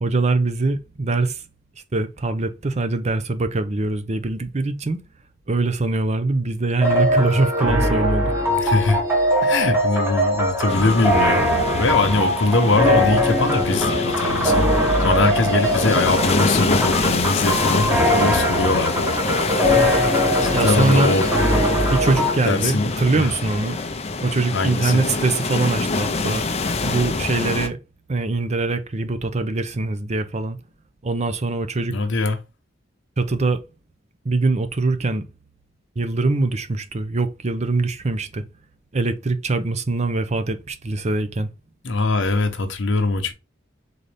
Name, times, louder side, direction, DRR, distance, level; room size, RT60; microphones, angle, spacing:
voice 1, 0.0-1.4 1.9-5.0 5.5-8.3 20.5-21.1 21.9-23.8 24.2-26.4 26.8-27.8 28.1-30.6 31.0-32.0 33.2-33.6 34.2-35.2 36.0-38.4 38.9-41.5, right 3 dB, 35° right, 0.6 m, -23 dB
sound 1, 6.8-22.4, equal, 10° right, 1.4 m, -21 dB
voice 2, 8.6-9.0 9.4-11.4 11.7-14.6 15.0-19.0 20.2-21.3 22.4-23.3 24.5-25.0 31.9-32.4 41.8-43.3, left 3 dB, 65° left, 0.8 m, -22 dB
sound 2, 10.7-27.7, left 3 dB, 35° left, 0.6 m, -25 dB
4.0 x 3.9 x 3.3 m
head